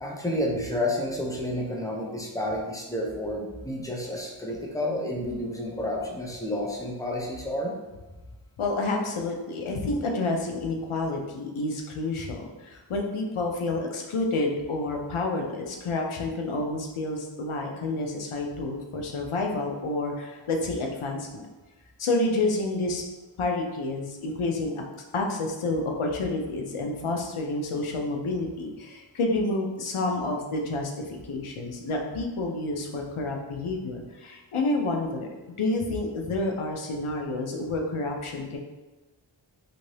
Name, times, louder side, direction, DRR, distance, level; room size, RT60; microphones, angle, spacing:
voice 1, 0.0-7.7, left 1 dB, 5° left, -2 dB, 0.6 m, -30 dB
voice 2, 8.6-21.5 22.0-23.0 23.4-24.8 25.1-38.6, left 2 dB, 90° left, 2 dB, 0.6 m, -29 dB
2.6 x 2.6 x 3.2 m, 1.2 s
wide cardioid pair, 40°, 48 cm